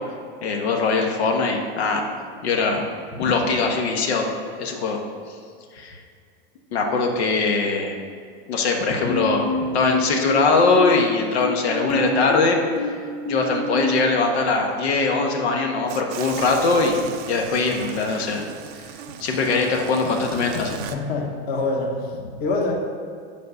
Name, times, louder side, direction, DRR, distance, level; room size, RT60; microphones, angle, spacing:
voice 1, 0.4-2.0 2.4-2.8 3.2-4.3 4.6-5.0 5.7-6.0 6.7-8.0 8.5-9.5 9.7-12.6 13.3-18.5 19.2-20.8, left 4 dB, 85° left, 2 dB, 1.3 m, -21 dB
sound 1, 9.1-14.2, left 1 dB, 60° left, 1.0 m, -28 dB
sound 2, 15.9-21.0, right 9 dB, 30° right, 0.4 m, -38 dB
voice 2, 20.9-22.1 22.4-22.7, left 3 dB, 30° left, 1 dB, 1.1 m, -25 dB
7.6 x 5.4 x 5.5 m, 2.2 s
supercardioid pair, 150°, 31 cm